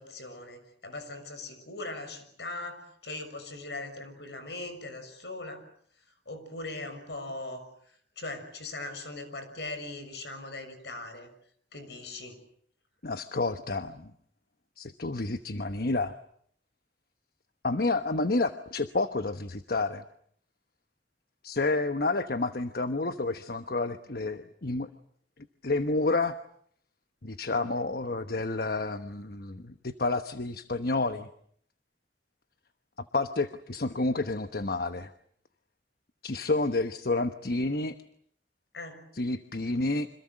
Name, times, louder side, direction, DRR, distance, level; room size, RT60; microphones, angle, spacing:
voice 1, 0.0-5.6 6.3-11.3 11.7-12.4 38.7-39.1, left 2 dB, 75° left, 8 dB, 6.5 m, -40 dB
voice 2, 13.0-14.1 14.8-16.1 17.6-20.0 21.4-24.9 25.6-26.4 27.2-31.3 33.0-35.1 36.2-38.0 39.1-40.1, left 2 dB, 60° left, 10 dB, 1.1 m, -29 dB
28.0 x 26.0 x 7.7 m, 0.64 s
head